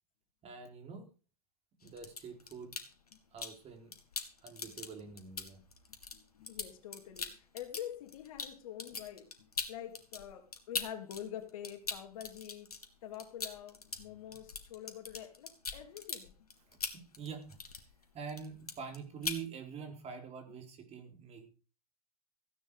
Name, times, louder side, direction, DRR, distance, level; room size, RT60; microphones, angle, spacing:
voice 1, 0.4-1.1 1.8-2.8 3.3-3.9 4.4-5.6 16.7-17.6 18.1-21.5, right 6 dB, 35° right, 5 dB, 4.4 m, -46 dB
sound 1, 1.8-3.6 3.9-11.2 11.5-18.0 18.3-19.0 19.2-19.4, left 4 dB, 90° left, 2.1 m, -41 dB
voice 2, 6.1-12.7 13.0-16.3, left 10 dB, 65° left, 6 dB, 2.7 m, -46 dB
15.5 x 10.0 x 5.1 m, 0.36 s
hypercardioid pair, 90°, 19 cm